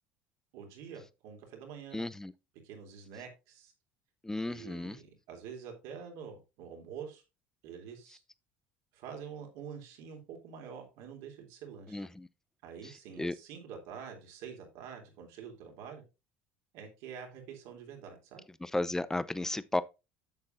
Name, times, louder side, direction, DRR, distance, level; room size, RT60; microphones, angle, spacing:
voice 1, 0.5-2.1 2.6-3.7 4.5-7.2 7.6-8.2 8.9-12.1 12.6-16.0 16.7-18.4, right 7 dB, 75° right, 3.3 m, -46 dB
voice 2, 1.9-2.3 4.2-5.0 11.9-12.3 12.8-13.3 18.6-19.8, left 2 dB, 10° left, 0.7 m, -34 dB
10.5 x 7.5 x 2.6 m
supercardioid pair, 80°, 6 cm